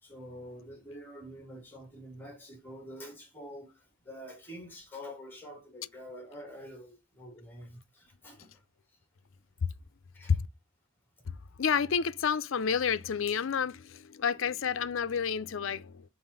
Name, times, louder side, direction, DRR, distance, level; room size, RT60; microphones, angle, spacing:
voice 1, 0.0-3.7 4.1-8.5 10.1-10.4, equal, 10° left, 2.1 m, -46 dB
voice 2, 11.6-16.0, left 6 dB, 65° left, 0.5 m, -29 dB
5.7 x 4.1 x 5.5 m
head